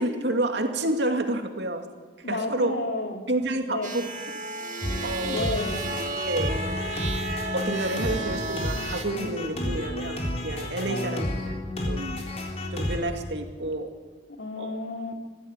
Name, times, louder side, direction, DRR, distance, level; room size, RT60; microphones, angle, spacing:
voice 1, 0.0-1.9 2.3-2.8 3.3-4.1 5.0-5.5 6.3-6.6 7.5-11.5 11.8-12.2 12.7-13.9 14.6-14.7, right 1 dB, 70° right, 5 dB, 2.4 m, -29 dB
voice 2, 2.2-3.2 3.7-4.0 5.2-5.9 10.9-11.3 14.4-15.2, left 2 dB, 80° left, 3 dB, 3.0 m, -31 dB
sound 1, 3.8-9.0, right 3 dB, 40° right, 2.0 m, -33 dB
sound 2, 4.8-13.0, left 1 dB, 35° left, 4.0 m, -31 dB
22.5 x 15.5 x 9.1 m, 1.4 s
head